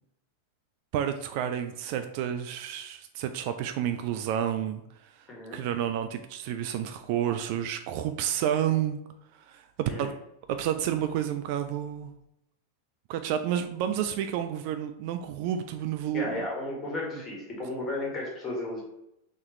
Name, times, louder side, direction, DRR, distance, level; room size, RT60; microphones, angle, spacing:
voice 1, 0.9-4.8 5.5-9.0 9.5-10.1 10.5-12.1 13.1-16.5, right 10 dB, 45° right, 8 dB, 0.3 m, -30 dB
voice 2, 5.3-5.6 9.8-10.1 16.1-18.8, left 2 dB, 25° left, -2 dB, 1.6 m, -34 dB
4.3 x 3.6 x 3.1 m, 0.81 s
figure-of-eight pair, 90°, 0 cm